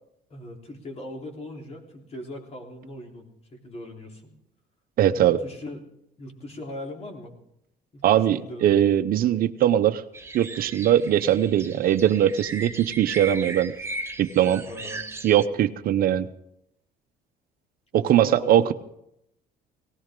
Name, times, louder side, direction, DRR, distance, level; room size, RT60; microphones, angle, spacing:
voice 1, 0.3-4.3 5.1-5.8 6.2-7.3 7.9-8.8 14.7-15.0 17.9-18.7, left 1 dB, 40° left, 0 dB, 3.6 m, -40 dB
voice 2, 5.0-5.4 8.0-10.0 10.3-13.7 14.2-14.6 15.2-16.3 17.9-18.7, right 11 dB, 60° right, 11 dB, 0.7 m, -21 dB
sound 1, 10.1-15.5, right 3 dB, 15° right, 1.1 m, -37 dB
19.0 x 17.5 x 3.7 m, 0.79 s
cardioid pair, 110°, 17 cm